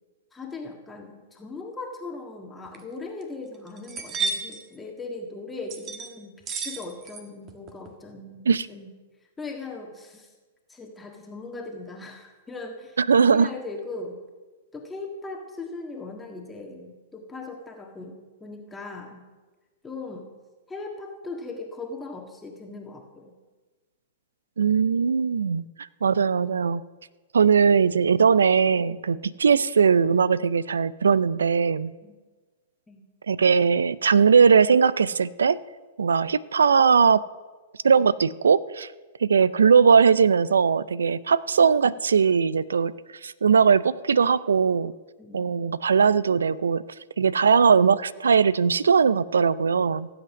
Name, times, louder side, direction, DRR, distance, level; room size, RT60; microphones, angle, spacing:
voice 1, 0.3-6.4 6.6-8.9 9.4-10.3 10.7-13.0 13.3-14.2 14.7-19.2 19.8-20.3 20.7-23.3 32.0-32.2 32.9-33.0 45.2-45.5, left 3 dB, 10° left, 2 dB, 1.6 m, -39 dB
sound 1, 2.6-2.8 3.2-3.3 3.7-4.6 5.7-6.1 6.5-7.2 7.5-7.9, right 4 dB, 30° right, 1.5 m, -31 dB
voice 2, 13.0-13.5 24.6-25.6 26.0-26.8 27.3-31.9 33.3-35.6 36.0-37.2 37.8-38.9 39.2-42.9 43.2-44.9 45.3-46.8 47.2-50.1, right 6 dB, 80° right, 19 dB, 0.4 m, -20 dB
15.5 x 8.0 x 6.3 m, 1.3 s
hypercardioid pair, 110°, 0 cm